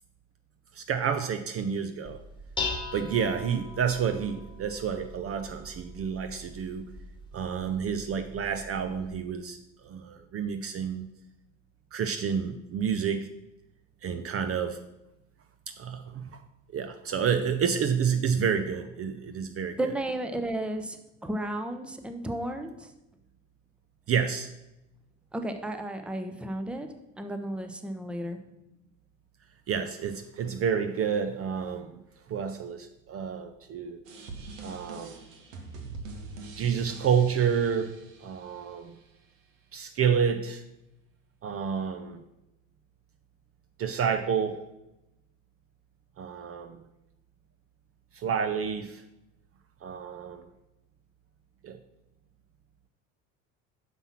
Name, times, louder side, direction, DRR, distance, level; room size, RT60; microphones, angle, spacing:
voice 1, 0.7-2.2 2.9-6.8 7.3-9.6 9.8-11.1 11.9-13.3 14.0-14.8 15.8-16.4 16.7-19.9 24.1-24.5 29.7-32.0 32.3-34.0 34.6-35.2 36.6-37.9 38.2-38.9 39.7-40.6 41.4-42.2 43.8-44.7 46.2-46.8 48.1-49.0 49.8-50.5 51.6-51.8, right 7 dB, 35° right, 8 dB, 0.6 m, -29 dB
Dishes pots and pans, 2.0-9.1, left 3 dB, 10° left, 1.7 m, -40 dB
voice 2, 19.8-21.0 21.2-22.9 25.3-26.9 27.2-28.4, right 1 dB, 5° right, 6 dB, 0.8 m, -33 dB
sound 1, 34.0-39.0, right 3 dB, 85° right, 1.3 m, -44 dB
5.9 x 5.5 x 5.9 m, 0.92 s
hypercardioid pair, 85°, 38 cm